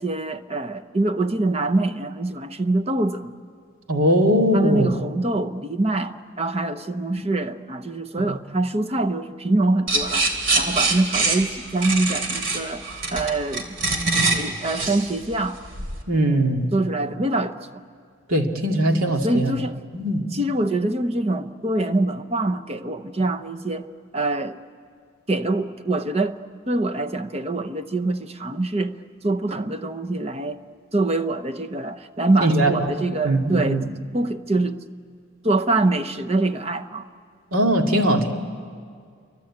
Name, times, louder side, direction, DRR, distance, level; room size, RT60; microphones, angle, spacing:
voice 1, 0.0-3.3 4.5-10.3 10.6-13.8 14.1-15.6 16.7-17.7 19.2-19.8 20.3-23.9 24.1-24.6 25.3-26.4 26.7-29.0 29.2-30.6 30.9-33.8 34.1-34.8 35.4-37.1, right 2 dB, 30° right, 0.8 m, -24 dB
voice 2, 3.9-4.9 16.1-16.7 18.3-19.6 19.9-20.2 32.4-32.9 33.2-33.8 37.5-38.3, right 1 dB, 85° right, 2.4 m, -20 dB
sound 1, 9.9-16.0, right 3 dB, 60° right, 2.9 m, -24 dB
28.0 x 24.0 x 8.6 m
head